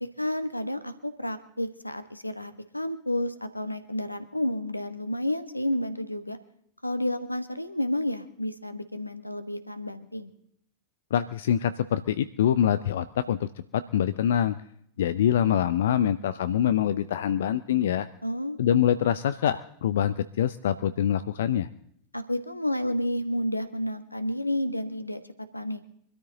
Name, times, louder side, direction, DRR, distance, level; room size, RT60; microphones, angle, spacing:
voice 1, 0.0-6.4 6.8-10.3 18.2-18.6 22.1-25.2 25.5-25.8, left 1 dB, 85° left, 11 dB, 1.1 m, -30 dB
voice 2, 11.1-14.6 15.0-18.1 18.6-21.7, left 10 dB, 60° left, 14 dB, 0.5 m, -25 dB
24.0 x 13.0 x 3.9 m, 0.69 s
figure-of-eight pair, 90°, 0 cm